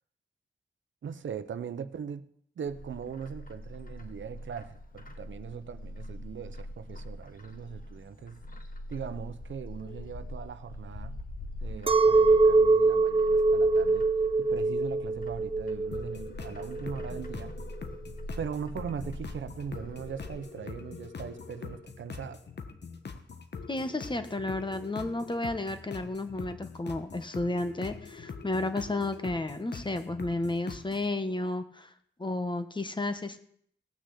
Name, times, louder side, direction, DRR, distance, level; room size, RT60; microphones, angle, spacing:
voice 1, 1.0-2.3 2.6-8.4 8.9-11.2 11.6-14.1 14.4-17.6 18.4-22.4, right 7 dB, 85° right, 0.9 m, -40 dB
Bird, 2.7-20.4, left 1 dB, 50° left, 1.5 m, -43 dB
Chink clink, 11.9-17.3, right 3 dB, 30° right, 0.6 m, -24 dB
sound 1, 15.9-31.1, left 5 dB, 65° left, 1.4 m, -43 dB
voice 2, 23.7-31.9 32.2-33.4, left 2 dB, 25° left, 1.5 m, -32 dB
17.5 x 6.4 x 8.3 m
wide cardioid pair, 80°, 19 cm